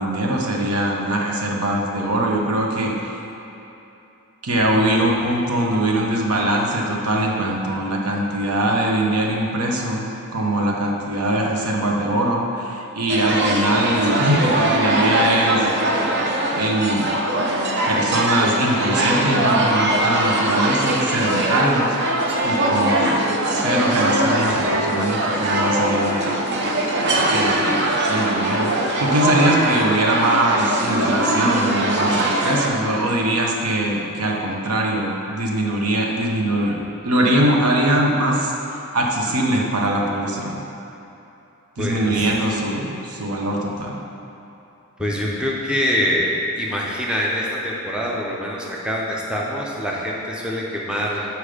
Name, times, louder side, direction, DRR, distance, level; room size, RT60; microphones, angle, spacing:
voice 1, 0.0-3.1 4.4-15.7 16.6-17.2 17.9-21.9 22.4-23.2 23.5-26.4 27.1-36.8 37.0-38.5 38.9-40.6 41.8-44.0, right 1 dB, 90° right, -1 dB, 0.9 m, -22 dB
sound 1, 13.1-32.7, right 1 dB, 50° right, 0.7 m, -21 dB
voice 2, 41.8-42.3 45.0-51.3, equal, 5° right, -4 dB, 0.6 m, -24 dB
6.8 x 4.5 x 5.0 m, 2.9 s
head